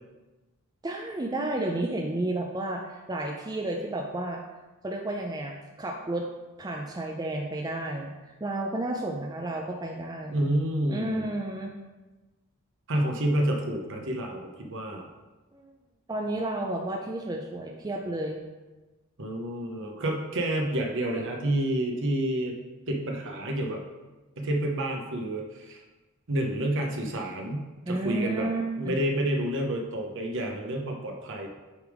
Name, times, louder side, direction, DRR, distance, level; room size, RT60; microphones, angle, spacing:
voice 1, 0.8-4.4 4.8-6.3 6.6-10.5 10.9-11.7 15.5-15.7 16.1-18.4 27.9-29.0, right 1 dB, 20° right, 1 dB, 0.5 m, -32 dB
voice 2, 10.3-11.3 12.9-15.1 19.2-22.6 22.9-23.8 24.4-25.8 26.3-28.5 28.8-31.5, right 1 dB, 60° right, 1 dB, 0.8 m, -29 dB
8.2 x 3.5 x 4.9 m, 1.2 s
head